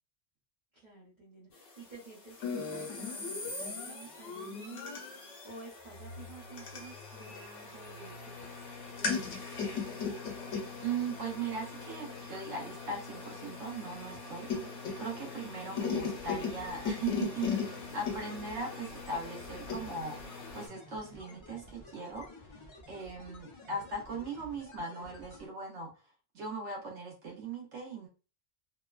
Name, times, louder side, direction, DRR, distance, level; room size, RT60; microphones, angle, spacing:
voice 1, 0.7-8.7 14.5-15.8, right 3 dB, 40° right, -6 dB, 0.9 m, -51 dB
sound 1, 2.4-20.7, left 5 dB, 85° left, 1.1 m, -39 dB
voice 2, 10.8-14.5 15.0-22.6 22.9-25.9 26.3-28.1, right 3 dB, 75° right, -1 dB, 1.0 m, -39 dB
sound 2, 15.9-25.5, left 1 dB, 35° left, 0.5 m, -52 dB
3.0 x 2.1 x 2.3 m, 0.33 s
omnidirectional pair, 1.2 m